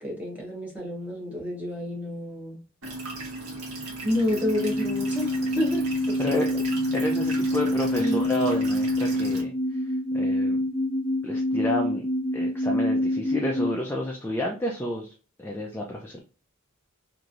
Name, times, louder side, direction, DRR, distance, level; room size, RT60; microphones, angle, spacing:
voice 1, 0.0-2.6 4.0-6.6 8.0-8.3, left 1 dB, 5° right, 0.9 m, -30 dB
sound 1, 2.8-9.4, right 2 dB, 75° right, 1.0 m, -36 dB
sound 2, 4.1-13.7, left 1 dB, 25° left, 1.1 m, -26 dB
voice 2, 6.9-9.5 9.8-10.6 11.2-12.1 12.3-15.1 15.4-16.2, left 1 dB, 10° left, 0.3 m, -30 dB
3.0 x 2.6 x 2.5 m
head